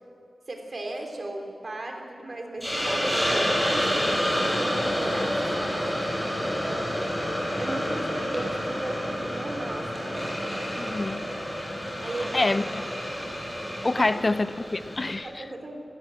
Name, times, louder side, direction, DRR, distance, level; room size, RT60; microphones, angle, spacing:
voice 1, 0.5-5.8 7.6-10.4 12.0-12.5 12.8-12.9 13.9-14.1 15.1-15.8, right 2 dB, 45° right, 3.6 m, -36 dB
Hiss, 2.6-15.1, equal, ahead, 7.4 m, -29 dB
voice 2, 10.8-11.3 12.3-12.8 13.8-15.4, left 2 dB, 30° left, 0.6 m, -26 dB
30.0 x 18.0 x 7.8 m
wide cardioid pair, 125°, 0 cm